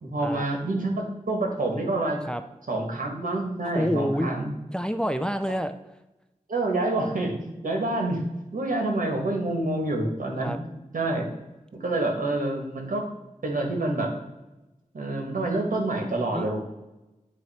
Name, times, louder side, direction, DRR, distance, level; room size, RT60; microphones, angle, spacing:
voice 1, 0.0-2.2 2.7-4.5 6.5-8.2 8.5-10.5 10.9-11.3 11.7-13.0 13.4-14.1 14.9-16.6, right 2 dB, 80° right, 1 dB, 1.4 m, -27 dB
voice 2, 3.7-4.3 4.7-5.7 10.4-10.6 16.3-16.6, equal, 5° left, 9 dB, 0.4 m, -28 dB
9.1 x 3.1 x 4.2 m, 1.0 s
wide cardioid pair, 60°, 14 cm